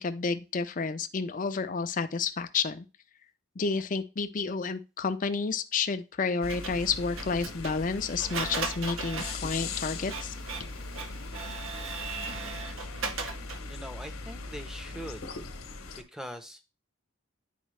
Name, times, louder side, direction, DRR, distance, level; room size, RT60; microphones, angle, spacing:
voice 1, 0.0-2.9 3.6-10.3, left 5 dB, 35° left, 8 dB, 0.4 m, -30 dB
sound 1, 6.4-16.0, left 3 dB, 70° left, 1.0 m, -40 dB
Printer, 6.5-13.7, right 4 dB, 70° right, 0.8 m, -38 dB
voice 2, 13.7-15.2 16.1-16.7, equal, ahead, 7 dB, 0.7 m, -42 dB
10.0 x 4.5 x 3.2 m, 0.30 s
head